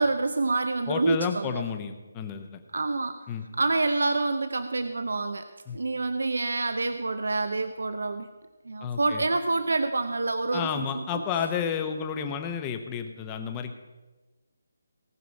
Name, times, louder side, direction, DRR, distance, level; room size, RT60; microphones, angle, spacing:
voice 1, 0.0-1.6 2.7-3.2 3.6-5.5 5.7-8.3 8.7-10.9 11.1-11.2, right 3 dB, 80° right, 9 dB, 0.7 m, -27 dB
voice 2, 0.9-2.6 3.3-3.5 5.7-5.8 8.8-9.2 10.5-13.7, left 7 dB, 15° left, 6 dB, 0.8 m, -31 dB
18.0 x 6.1 x 5.3 m, 1.2 s
hypercardioid pair, 170°, 0 cm